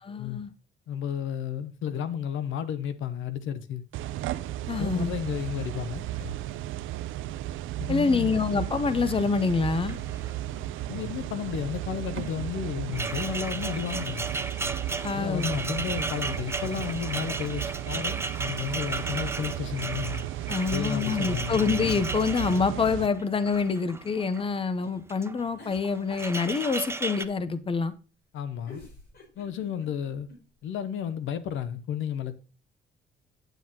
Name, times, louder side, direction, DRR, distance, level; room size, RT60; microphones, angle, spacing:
voice 1, 0.0-0.5 4.7-5.1 7.9-10.0 15.0-15.6 20.5-27.9, left 5 dB, 25° left, 0.7 m, -26 dB
voice 2, 0.9-3.8 4.7-6.3 7.8-8.3 10.9-14.3 15.1-20.3 20.7-21.6 28.3-28.8 29.4-30.3 30.6-32.3, left 9 dB, 75° left, 0.7 m, -32 dB
sound 1, 3.9-23.1, right 14 dB, 80° right, 0.5 m, -35 dB
sound 2, 9.4-9.5 9.7-10.6 10.8-11.1 12.2-24.5 25.0-25.4 25.7-27.3, right 3 dB, 10° right, 0.5 m, -35 dB
sound 3, 22.9-24.1 24.5-24.6 25.6-27.4 28.3-28.4 28.7-30.4 30.8-30.9 31.1-31.2, left 3 dB, 55° left, 4.8 m, -49 dB
9.1 x 7.8 x 2.8 m
cardioid pair, 90°, 20 cm